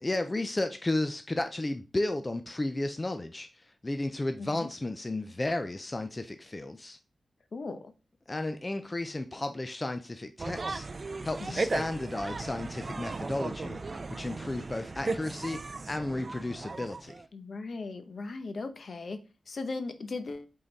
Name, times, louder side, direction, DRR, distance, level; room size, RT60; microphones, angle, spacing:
voice 1, 0.0-7.0 8.3-10.9 11.2-17.1, left 2 dB, 20° left, 0.5 m, -33 dB
voice 2, 4.4-4.7 7.5-7.9 11.4-11.6 17.3-19.2 19.5-20.5, left 3 dB, 55° left, 0.8 m, -38 dB
sound 1, 10.4-17.3, right 3 dB, 35° right, 0.4 m, -36 dB
7.7 x 3.9 x 4.0 m
wide cardioid pair, 135°, 0 cm